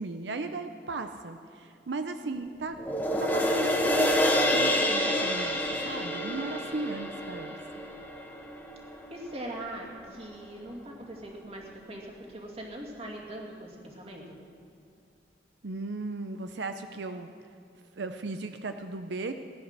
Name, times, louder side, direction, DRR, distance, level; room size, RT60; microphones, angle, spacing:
voice 1, 0.0-2.8 3.2-7.6 15.6-17.3 18.0-19.3, right 3 dB, 90° right, 8 dB, 0.6 m, -36 dB
sound 1, 2.8-9.3 9.8-9.9, left 1 dB, 10° left, 1.6 m, -28 dB
voice 2, 9.1-14.4, right 1 dB, 35° right, -1 dB, 2.4 m, -41 dB
16.5 x 10.5 x 6.7 m, 2.6 s
head